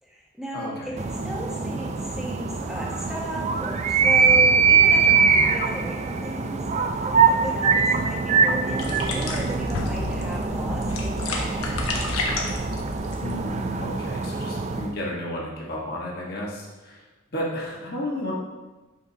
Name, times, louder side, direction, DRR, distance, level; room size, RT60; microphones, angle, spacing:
voice 1, 0.0-6.6 6.9-12.1, equal, ahead, -3 dB, 1.0 m, -35 dB
voice 2, 0.5-0.9 13.2-17.0 17.3-18.3, left 1 dB, 45° left, -4 dB, 1.3 m, -32 dB
sound 1, 1.0-14.9, right 5 dB, 30° right, 0.3 m, -23 dB
sound 2, 8.8-13.8, left 2 dB, 85° left, 1.1 m, -31 dB
Explosion, 9.7-11.4, left 5 dB, 70° left, 0.3 m, -37 dB
8.4 x 5.6 x 2.8 m, 1.2 s
head